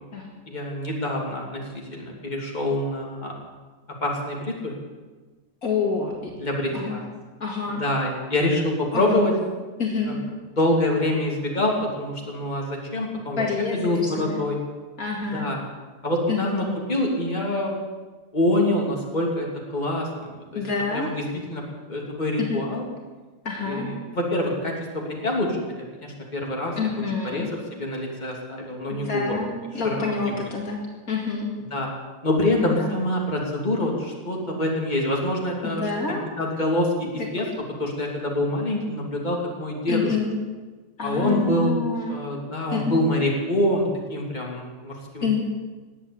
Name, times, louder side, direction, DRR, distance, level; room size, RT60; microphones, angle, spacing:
voice 1, 0.5-3.3 4.0-4.7 6.4-7.0 7.7-9.3 10.1-10.2 10.5-13.4 13.7-14.6 15.2-15.6 16.0-16.6 16.9-17.7 18.3-19.5 19.7-20.6 20.9-21.1 21.5-21.6 21.9-22.8 23.6-25.6 26.0-26.7 27.3-29.4 29.8-30.1 31.7-31.9 32.2-35.9 36.4-37.4 37.8-40.0 41.0-41.7 42.1-45.4, left 1 dB, 25° left, -1 dB, 3.1 m, -25 dB
voice 2, 5.6-6.3 6.7-7.0 7.4-7.8 8.9-9.2 9.8-10.2 13.4-14.4 15.0-15.5 16.3-16.5 20.5-21.1 22.4-22.6 23.4-23.9 26.8-27.5 28.9-30.8 31.1-31.5 32.5-32.9 35.6-36.2 39.9-40.4 41.0-42.2 42.7-43.0 45.2-45.4, left 4 dB, 60° left, -1 dB, 2.7 m, -27 dB
19.5 x 8.4 x 8.8 m, 1.3 s
omnidirectional pair, 1.7 m